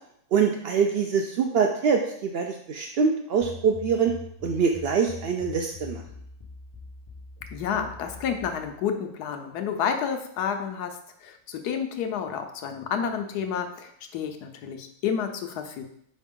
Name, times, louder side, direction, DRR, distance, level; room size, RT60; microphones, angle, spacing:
voice 1, 0.3-4.1 4.4-6.0, right 6 dB, 80° right, 3 dB, 0.5 m, -24 dB
sound 1, 3.4-8.7, left 4 dB, 20° left, 1.0 m, -43 dB
voice 2, 7.5-15.8, left 7 dB, 90° left, 6 dB, 1.3 m, -30 dB
5.2 x 5.0 x 3.6 m, 0.69 s
omnidirectional pair, 1.7 m